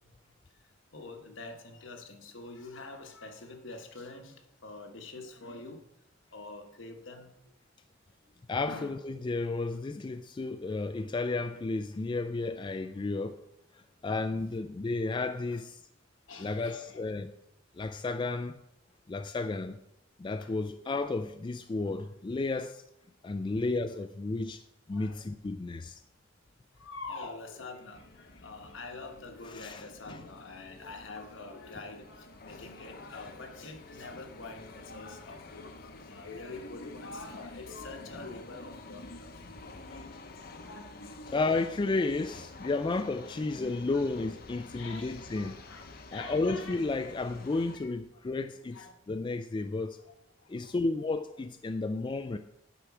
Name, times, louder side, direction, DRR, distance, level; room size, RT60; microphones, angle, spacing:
voice 1, 0.9-5.8 6.3-7.3 8.7-8.9 15.5-15.6 16.3-17.0 20.4-20.6 24.9-25.2 26.8-39.3 39.9-41.1 43.9-44.0 44.7-46.9 47.7-47.9 48.7-48.9 50.6-51.2, left 3 dB, 75° left, 1.2 m, -45 dB
voice 2, 8.5-13.4 13.7-15.8 16.4-17.3 17.7-18.6 19.1-19.8 20.2-22.8 23.2-24.6 24.9-26.0 29.4-29.8 30.1-30.2 41.3-45.6 46.1-50.0 50.5-52.4, left 3 dB, 25° left, 0.3 m, -32 dB
sound 1, 27.9-47.8, left 2 dB, 50° left, 0.8 m, -49 dB
9.9 x 4.6 x 6.0 m
head